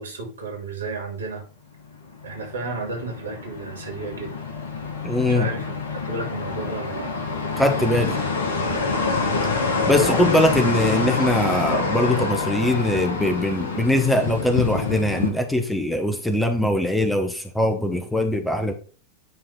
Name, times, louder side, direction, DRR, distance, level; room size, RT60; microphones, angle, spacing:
voice 1, 0.0-1.5 2.2-4.4 5.3-7.1, right 3 dB, 70° right, 2 dB, 2.6 m, -32 dB
sound 1, 1.9-15.3, left 4 dB, 65° left, 1.5 m, -26 dB
voice 2, 5.0-5.5 7.6-8.2 9.9-18.7, left 1 dB, 5° left, 6 dB, 1.1 m, -21 dB
9.7 x 3.6 x 4.8 m, 0.38 s
figure-of-eight pair, 90°, 0 cm